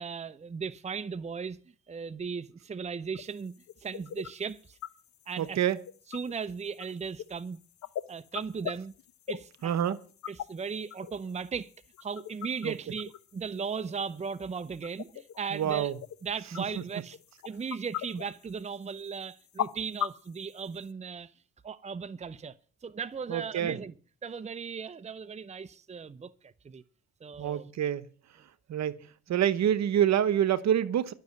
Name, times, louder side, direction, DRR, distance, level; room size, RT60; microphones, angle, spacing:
voice 1, 0.0-1.6 1.9-3.5 3.8-4.8 5.3-5.6 6.1-7.6 8.1-8.9 9.3-10.0 10.3-11.7 12.0-15.9 16.2-17.2 17.4-21.3 21.6-22.5 22.8-23.9 24.2-26.8 27.2-27.7, right 6 dB, 20° right, 0.7 m, -37 dB
sound 1, 3.1-20.9, left 11 dB, 65° left, 1.0 m, -42 dB
voice 2, 5.4-5.8 9.6-10.0 12.6-12.7 15.5-16.0 16.8-16.9 23.3-23.8 27.4-28.1 28.7-31.1, right 10 dB, 60° right, 1.1 m, -27 dB
12.0 x 6.5 x 9.4 m
cardioid pair, 90°, 30 cm